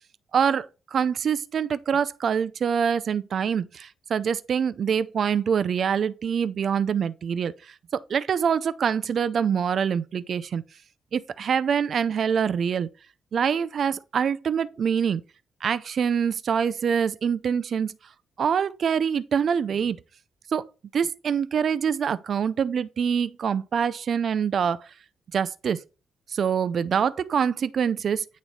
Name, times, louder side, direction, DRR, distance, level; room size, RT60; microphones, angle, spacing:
voice 1, 0.3-7.5 7.9-10.6 11.1-12.9 13.3-15.2 15.6-17.9 18.4-20.0 20.5-20.7 20.9-24.8 25.3-25.8 26.3-28.2, right 7 dB, 55° right, 0.4 m, -25 dB
8.9 x 3.1 x 4.0 m
cardioid pair, 110°, 0 cm